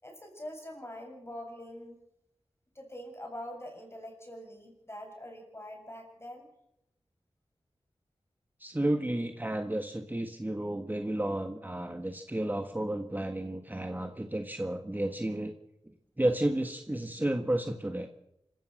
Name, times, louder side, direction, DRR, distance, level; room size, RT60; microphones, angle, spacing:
voice 1, 0.0-1.9 2.8-6.5, left 1 dB, 25° left, 3 dB, 7.1 m, -44 dB
voice 2, 8.6-15.5 16.2-18.1, right 1 dB, 15° right, 5 dB, 1.5 m, -32 dB
26.5 x 15.0 x 6.6 m, 0.82 s
wide cardioid pair, 70°, 11 cm